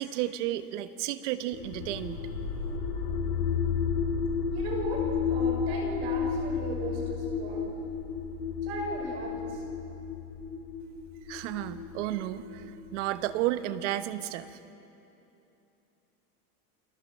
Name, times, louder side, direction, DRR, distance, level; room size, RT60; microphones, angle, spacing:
voice 1, 0.0-2.3 11.3-14.6, right 13 dB, 50° right, 11 dB, 1.1 m, -32 dB
sound 1, 1.5-13.3, left 6 dB, 80° left, 7.5 m, -32 dB
voice 2, 4.5-7.6 8.6-9.6, right 2 dB, 35° right, 1 dB, 5.3 m, -37 dB
29.0 x 20.0 x 7.4 m, 2.9 s
supercardioid pair, 170°, 45 cm